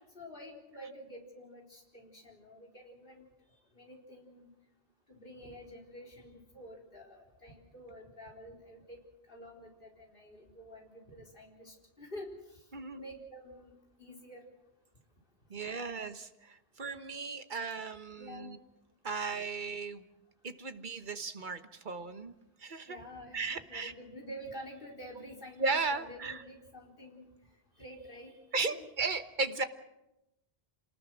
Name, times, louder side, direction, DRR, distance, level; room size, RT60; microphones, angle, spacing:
voice 1, 0.2-3.2 3.8-4.5 5.1-9.0 9.3-12.3 12.9-13.7 14.0-14.4 15.6-15.8 18.2-18.5 22.9-27.3 27.8-28.9, equal, 55° left, 0 dB, 4.4 m, -49 dB
voice 2, 15.5-18.6 19.0-20.1 20.4-22.3 22.6-23.0 23.3-23.9 25.6-26.4 28.5-29.6, right 4 dB, 50° right, 9 dB, 1.3 m, -36 dB
27.0 x 19.5 x 6.3 m, 0.92 s
omnidirectional pair, 1.1 m